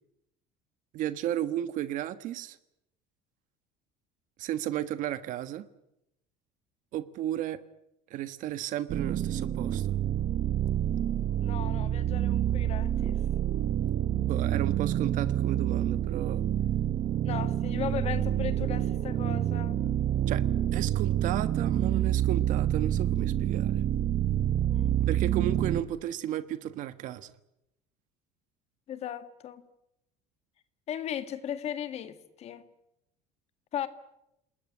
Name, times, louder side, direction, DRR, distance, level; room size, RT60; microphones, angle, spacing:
voice 1, 0.9-2.6 4.4-5.7 6.9-7.6 8.1-9.9 14.3-16.4 20.3-20.4 20.7-23.8 25.1-27.3, right 12 dB, 55° right, 13 dB, 1.3 m, -34 dB
sound 1, 8.9-25.8, right 11 dB, 40° right, 1.2 m, -28 dB
voice 2, 11.4-13.2 17.2-19.8 24.7-25.0 28.9-29.6 30.9-32.6 33.7-33.9, left 10 dB, 45° left, 11 dB, 1.8 m, -37 dB
29.0 x 20.0 x 10.0 m, 0.86 s
cardioid pair, 150°, 16 cm